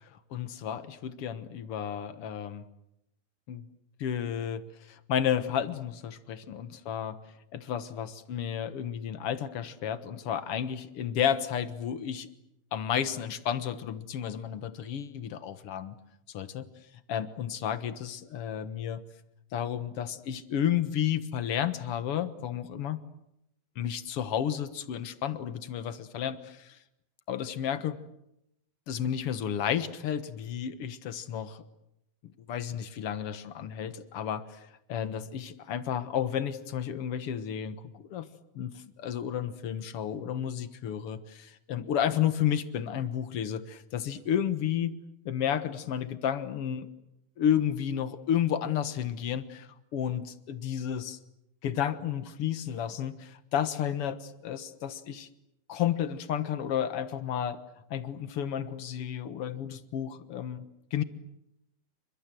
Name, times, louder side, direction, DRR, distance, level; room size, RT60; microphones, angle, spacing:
voice 1, 0.0-2.6 3.5-3.7 4.0-7.2 7.5-12.3 12.7-15.9 16.3-16.7 17.1-19.0 19.5-23.0 23.7-26.8 27.3-28.0 28.9-31.6 32.5-38.3 38.5-44.9 45.2-46.9 47.4-51.2 51.6-55.3 55.7-57.6 57.9-60.6 60.9-61.0, left 9 dB, 65° left, 11 dB, 1.4 m, -32 dB
29.0 x 25.0 x 7.7 m, 0.84 s
omnidirectional pair, 4.5 m